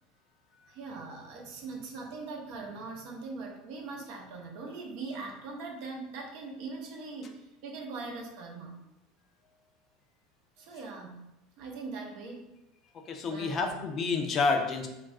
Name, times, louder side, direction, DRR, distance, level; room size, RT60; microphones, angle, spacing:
voice 1, 0.7-8.7 10.6-12.6 13.2-13.8, right 3 dB, 65° right, 1 dB, 0.6 m, -41 dB
voice 2, 12.9-14.9, left 4 dB, 40° left, 4 dB, 0.4 m, -29 dB
2.3 x 2.2 x 3.5 m, 0.96 s
supercardioid pair, 105°, 0 cm